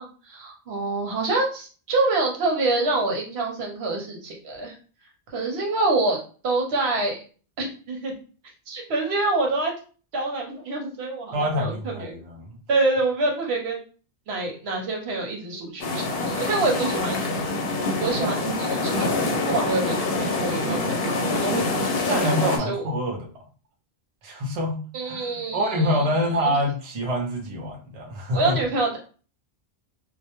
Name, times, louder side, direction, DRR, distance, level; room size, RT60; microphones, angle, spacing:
voice 1, 0.0-4.8 5.3-6.2 6.4-7.2 7.6-8.1 8.7-9.7 10.1-12.2 12.7-13.8 14.3-17.3 18.0-19.2 19.5-22.9 24.9-26.1 26.4-26.6 28.3-29.0, right 2 dB, 80° right, 0 dB, 1.0 m, -26 dB
voice 2, 11.3-12.6 22.1-23.3 24.2-28.6, equal, 45° right, 0 dB, 0.6 m, -26 dB
sound 1, 15.8-22.6, left 3 dB, 70° left, 0.8 m, -25 dB
2.2 x 2.1 x 2.8 m, 0.38 s
omnidirectional pair, 1.1 m